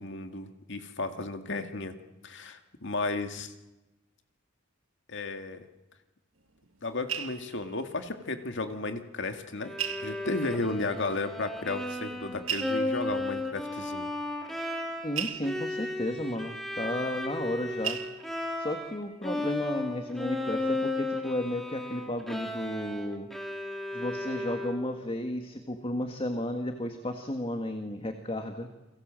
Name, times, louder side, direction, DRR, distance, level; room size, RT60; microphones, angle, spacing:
voice 1, 0.0-2.0 2.2-3.5 5.1-5.7 6.8-9.7 10.0-14.1, left 3 dB, 60° left, 7 dB, 2.2 m, -34 dB
sound 1, 6.4-8.7 9.0-9.1 9.8-10.7 11.6-11.7 12.4-17.6 17.8-18.8 19.2-19.5 19.8-19.9, right 9 dB, 75° right, 1.8 m, -39 dB
Bowed string instrument, 9.6-19.0 19.2-25.1, left 2 dB, ahead, 3.0 m, -35 dB
voice 2, 15.0-18.0 18.6-23.3 23.9-28.7, left 1 dB, 25° left, 6 dB, 1.8 m, -33 dB
29.5 x 22.5 x 7.6 m, 1.1 s
head